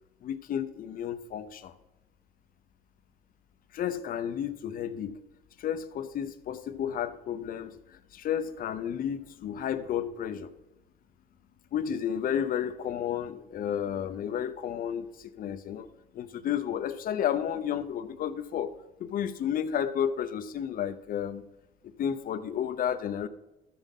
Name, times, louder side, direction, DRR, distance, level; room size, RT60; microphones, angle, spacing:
voice 1, 0.2-1.7 3.7-5.2 5.6-10.5 11.7-15.9 16.1-18.7 19.0-21.4 22.0-23.3, left 9 dB, 55° left, 11 dB, 0.8 m, -32 dB
13.0 x 5.5 x 5.7 m, 0.96 s
cardioid pair, 110°, 17 cm